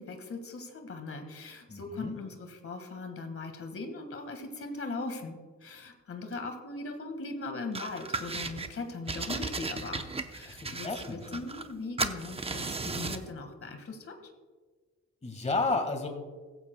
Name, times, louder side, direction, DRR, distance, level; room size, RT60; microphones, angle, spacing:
voice 1, 0.0-10.0 10.3-14.2, left 3 dB, 45° left, 5 dB, 1.7 m, -39 dB
voice 2, 1.7-2.2 10.4-11.4 15.2-16.1, left 3 dB, 20° left, 4 dB, 1.6 m, -32 dB
sound 1, 7.7-8.7 9.1-11.7 12.0-13.3, right 3 dB, 20° right, 0.7 m, -35 dB
15.5 x 14.5 x 2.2 m, 1.4 s
cardioid pair, 90°, 30 cm